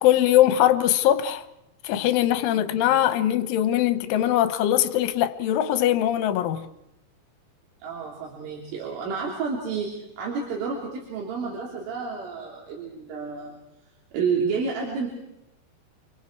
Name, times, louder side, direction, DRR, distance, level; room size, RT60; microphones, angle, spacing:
voice 1, 0.0-1.4 1.8-6.7, left 12 dB, 85° left, 3.5 m, -21 dB
voice 2, 7.8-13.6 14.1-15.1, right 5 dB, 85° right, 5.9 m, -30 dB
30.0 x 24.0 x 4.7 m
omnidirectional pair, 5.5 m